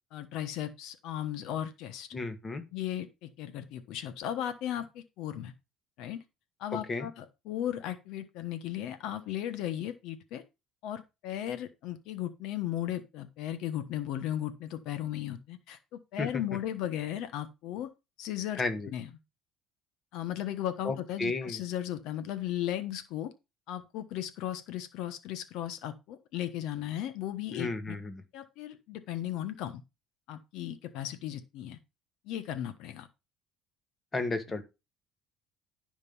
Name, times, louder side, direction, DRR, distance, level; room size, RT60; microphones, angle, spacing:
voice 1, 0.1-2.1 2.7-5.5 6.0-6.2 6.6-10.4 10.8-17.9 18.2-18.6 18.9-19.1 20.1-23.3 23.7-28.0 28.3-29.8 30.3-31.8 32.3-33.1, left 11 dB, 70° left, 1.1 m, -36 dB
voice 2, 2.1-2.6 6.7-7.1 16.2-16.4 18.5-18.9 20.8-21.6 27.5-28.2 34.1-34.6, left 3 dB, 20° left, 1.6 m, -33 dB
11.0 x 5.3 x 5.5 m
cardioid pair, 145°, 0 cm